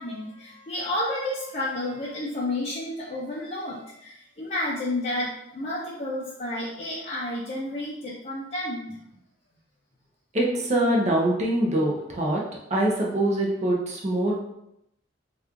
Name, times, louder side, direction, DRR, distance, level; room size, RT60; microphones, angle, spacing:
voice 1, 0.0-9.0, left 1 dB, 35° left, -7 dB, 0.5 m, -31 dB
voice 2, 10.3-12.4 12.7-14.4, right 1 dB, 35° right, -2 dB, 0.7 m, -24 dB
3.0 x 2.4 x 3.6 m, 0.81 s
head